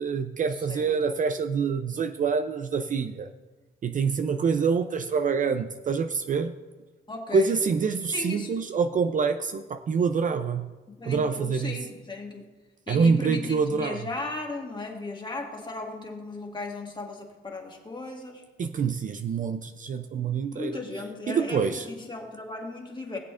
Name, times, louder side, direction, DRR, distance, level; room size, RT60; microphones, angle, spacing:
voice 1, 0.0-3.3 3.8-6.5 7.3-10.7 11.1-11.8 12.9-14.0 18.6-20.8 21.3-21.8, right 5 dB, 40° right, 9 dB, 0.5 m, -26 dB
voice 2, 0.5-1.0 7.1-7.6 8.1-8.7 10.9-12.4 12.9-18.4 20.5-23.2, left 2 dB, 25° left, 1 dB, 1.8 m, -36 dB
19.0 x 7.6 x 2.5 m, 1.2 s
cardioid pair, 90°, 20 cm